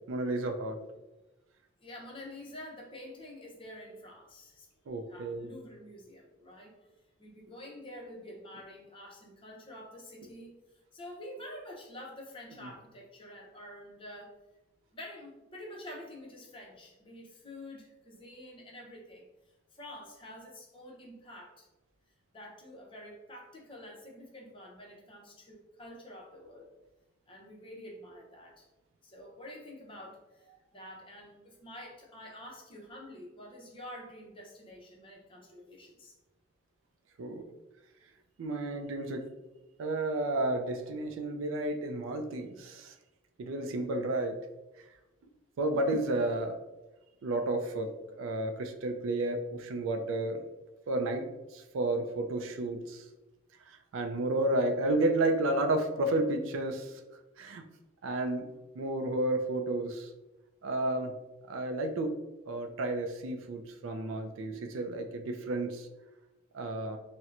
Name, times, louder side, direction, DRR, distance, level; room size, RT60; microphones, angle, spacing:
voice 1, 0.1-0.8 4.9-5.5 37.2-37.4 38.4-39.3 39.8-42.9 43.4-44.4 45.6-46.6 47.2-50.4 50.9-53.0 53.9-56.9 57.4-57.6 58.0-58.5 58.8-60.1 60.6-61.1 61.5-62.2 62.5-65.9 66.5-67.0, right 2 dB, 70° right, 6 dB, 0.4 m, -31 dB
voice 2, 1.8-4.7 5.1-6.9 7.2-14.3 14.9-19.3 19.7-21.7 22.3-26.7 27.3-28.7 29.0-36.1, left 1 dB, 25° left, -1 dB, 0.6 m, -48 dB
4.2 x 2.1 x 2.4 m, 1.0 s
head